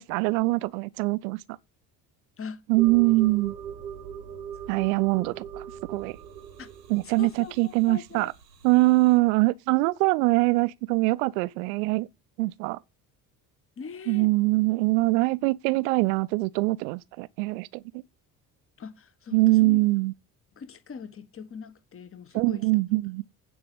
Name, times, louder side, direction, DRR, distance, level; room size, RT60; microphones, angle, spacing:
voice 1, 0.0-1.4 2.7-3.5 4.7-6.2 6.9-8.3 8.6-12.1 12.4-12.8 14.1-17.8 19.3-20.1 22.3-23.2, right 22 dB, 60° right, 0.6 m, -23 dB
sound 1, 2.8-9.2, right 8 dB, 80° right, 1.0 m, -41 dB
voice 2, 7.2-8.3 13.8-14.3 18.8-19.8 20.6-22.6, left 6 dB, 25° left, 1.2 m, -41 dB
9.4 x 5.1 x 6.9 m
figure-of-eight pair, 50°, 49 cm